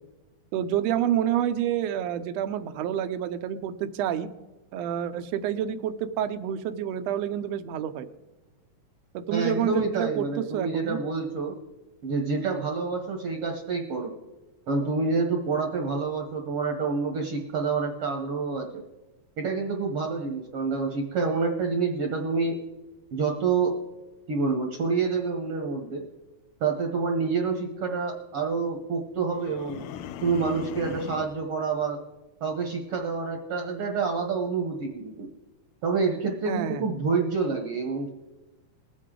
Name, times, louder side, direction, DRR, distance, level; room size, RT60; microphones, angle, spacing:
voice 1, 0.5-4.3 4.7-8.1 9.1-11.0 36.5-36.8, right 10 dB, 80° right, 10 dB, 1.5 m, -28 dB
voice 2, 9.3-11.5 12.0-14.1 14.7-18.7 19.4-22.6 23.1-23.7 24.3-26.0 26.6-29.8 30.2-32.0 32.4-35.3 35.8-38.1, right 4 dB, 65° right, 2 dB, 1.5 m, -27 dB
sound 1, 29.3-31.4, left 10 dB, 80° left, 1.8 m, -39 dB
20.5 x 8.3 x 3.8 m, 1.1 s
omnidirectional pair, 3.6 m